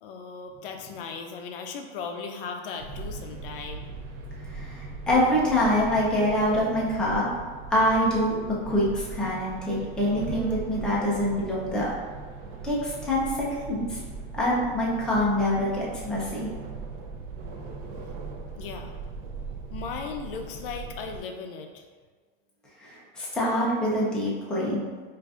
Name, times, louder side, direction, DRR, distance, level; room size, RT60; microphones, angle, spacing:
voice 1, 0.0-3.9 18.6-19.0 19.7-21.8, left 5 dB, 70° left, 4 dB, 0.5 m, -37 dB
sound 1, 2.8-21.2, right 4 dB, 65° right, 0.6 m, -39 dB
voice 2, 4.5-7.3 7.7-8.3 8.7-11.9 12.6-14.0 14.3-16.5 22.8-24.8, left 1 dB, 5° left, -6 dB, 0.4 m, -25 dB
4.7 x 2.5 x 2.4 m, 1.5 s
supercardioid pair, 155°, 29 cm